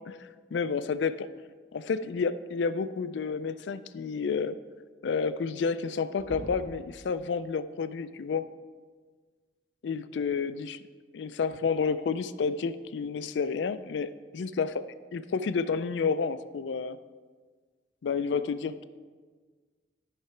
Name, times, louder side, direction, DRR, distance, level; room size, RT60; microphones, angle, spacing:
voice 1, 0.5-1.3 1.7-4.6 5.0-8.5 9.8-10.8 11.1-14.8 15.1-17.0 18.0-18.8, left 5 dB, 75° left, 13 dB, 0.4 m, -30 dB
sound 1, 6.2-6.8 8.5-8.6 10.5-10.6 11.5-11.6, left 1 dB, 20° left, 2.5 m, -42 dB
10.0 x 5.8 x 4.4 m, 1.5 s
head